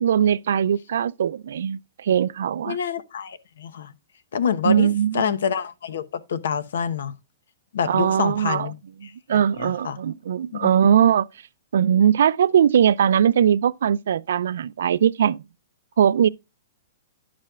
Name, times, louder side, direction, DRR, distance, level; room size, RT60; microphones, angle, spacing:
voice 1, 0.0-2.8 4.6-5.3 7.9-8.7 9.3-11.3 11.7-15.4 16.0-16.3, right 9 dB, 70° right, 0.4 m, -20 dB
voice 2, 2.6-3.9 4.3-7.2 7.7-8.8 9.0-10.0 10.5-10.9, left 7 dB, 75° left, 0.9 m, -27 dB
10.5 x 7.4 x 2.4 m
hypercardioid pair, 160°, 0 cm